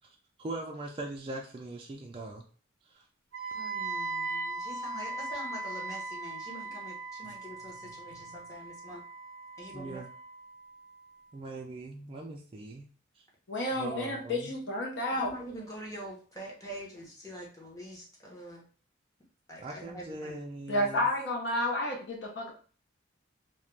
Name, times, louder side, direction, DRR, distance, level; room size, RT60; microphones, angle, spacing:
voice 1, 0.4-2.4 2.9-3.0 9.7-10.1 11.3-12.8 13.8-14.5 19.6-21.1, right 2 dB, 25° right, 0 dB, 0.3 m, -40 dB
Wind instrument woodwind instrument, 3.3-11.3, right 3 dB, 85° right, 0.5 m, -39 dB
voice 2, 3.5-9.0 9.6-10.0 15.2-18.6 19.5-20.3, right 1 dB, 15° left, -3 dB, 0.8 m, -45 dB
voice 3, 13.5-15.3 20.7-22.5, left 1 dB, 60° left, 0 dB, 0.6 m, -31 dB
2.4 x 2.1 x 3.1 m, 0.40 s
head